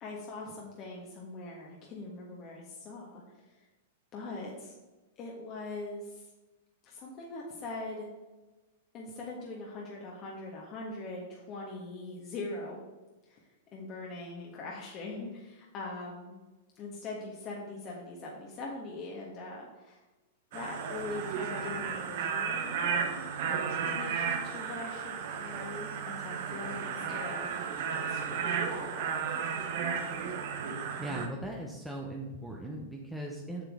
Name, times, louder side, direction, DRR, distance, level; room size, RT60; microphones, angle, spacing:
voice 1, 0.0-3.5 4.1-4.8 5.2-6.3 6.8-8.1 8.9-12.8 13.3-13.4 13.7-16.3 16.7-20.0 20.5-22.7 23.8-25.9 26.2-27.6 27.9-29.3, left 2 dB, 40° left, -2 dB, 1.4 m, -42 dB
sound 1, 20.5-31.3, right 6 dB, 60° right, 1.1 m, -34 dB
voice 2, 31.0-33.6, right 1 dB, ahead, -2 dB, 1.0 m, -39 dB
7.6 x 6.6 x 3.6 m, 1.2 s
hypercardioid pair, 115°, 0 cm